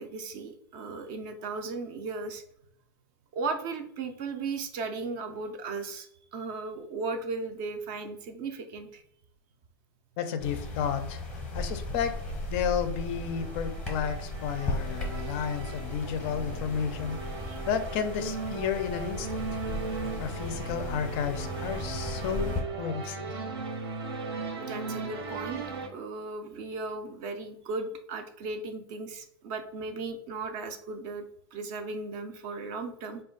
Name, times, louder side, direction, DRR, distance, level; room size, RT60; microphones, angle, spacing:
voice 1, 0.0-2.4 3.3-9.0 17.5-17.6 24.6-33.2, right 3 dB, 35° right, 7 dB, 0.5 m, -36 dB
voice 2, 10.2-11.2 11.5-12.1 12.5-17.2 17.7-19.4 20.2-23.3, left 7 dB, 35° left, 8 dB, 0.4 m, -32 dB
sound 1, 10.4-22.6, left 2 dB, 5° left, 0.7 m, -36 dB
sound 2, 12.0-25.9, right 4 dB, 75° right, 1.0 m, -38 dB
4.2 x 2.3 x 3.7 m, 0.72 s
supercardioid pair, 155°, 13 cm